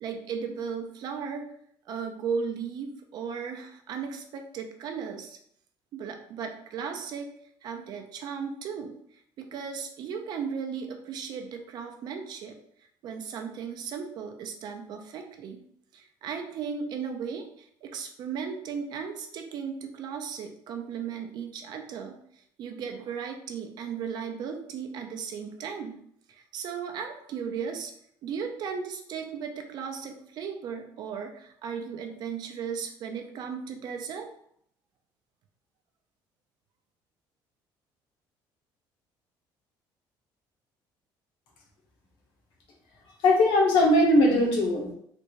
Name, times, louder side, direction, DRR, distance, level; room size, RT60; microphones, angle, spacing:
voice 1, 0.0-1.5 1.9-5.4 5.9-7.3 7.6-8.9 9.4-12.6 13.0-15.6 15.9-26.0 26.3-27.9 28.2-34.3, right 6 dB, 50° right, 4 dB, 0.5 m, -36 dB
voice 2, 43.2-44.9, left 1 dB, 70° left, -1 dB, 1.0 m, -20 dB
3.3 x 2.6 x 3.0 m, 0.67 s
cardioid pair, 170°, 9 cm